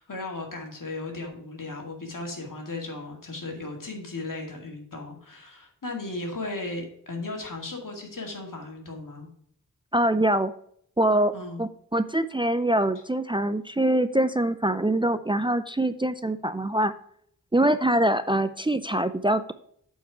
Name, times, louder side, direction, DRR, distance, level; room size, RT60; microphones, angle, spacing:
voice 1, 0.0-9.3 11.3-11.6, left 2 dB, 75° left, 1 dB, 2.2 m, -36 dB
voice 2, 9.9-10.5 11.0-16.9 17.5-19.5, right 1 dB, 15° right, 11 dB, 0.4 m, -24 dB
8.3 x 4.7 x 4.6 m, 0.66 s
wide cardioid pair, 70°, 33 cm